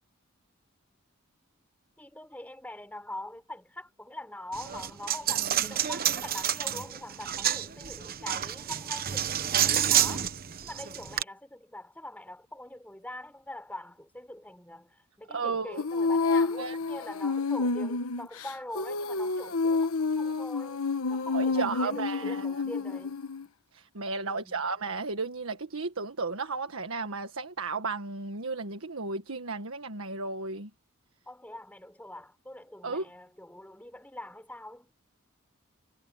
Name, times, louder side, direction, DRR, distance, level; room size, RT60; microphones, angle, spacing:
voice 1, 2.0-10.3 10.6-20.8 21.1-23.2 24.3-24.6 31.3-34.9, left 1 dB, 10° left, 5.1 m, -43 dB
Coin (dropping), 4.5-11.2, right 10 dB, 45° right, 0.9 m, -29 dB
voice 2, 15.3-15.8 16.6-16.8 21.3-22.6 23.7-30.7 32.8-33.0, right 4 dB, 75° right, 1.6 m, -34 dB
Female singing, 15.8-23.4, left 4 dB, 85° left, 1.2 m, -29 dB
head